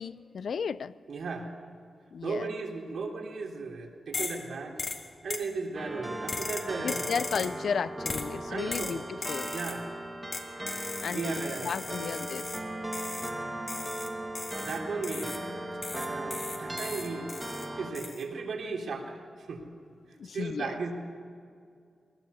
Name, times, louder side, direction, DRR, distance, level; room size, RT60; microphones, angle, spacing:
voice 1, 0.0-0.9 2.1-2.5 6.8-9.5 11.0-12.5 20.2-20.7, left 6 dB, 65° left, 16 dB, 0.5 m, -34 dB
voice 2, 1.1-1.5 2.2-4.8 5.2-7.2 8.5-9.0 9.4-10.0 11.1-12.1 14.5-15.5 15.9-19.6 20.3-20.9, right 4 dB, 75° right, 0 dB, 3.7 m, -36 dB
sound 1, 4.1-4.5 4.8-5.5 6.3-7.6 8.1-8.3 8.7-9.8 10.3-12.7 12.9-13.4 13.7-15.5 15.8-17.7 17.9-18.2, left 3 dB, 40° left, 1.7 m, -38 dB
sound 2, 5.7-17.9, right 1 dB, 10° right, 2.1 m, -38 dB
22.5 x 20.5 x 7.0 m, 2.3 s
wide cardioid pair, 160°, 0 cm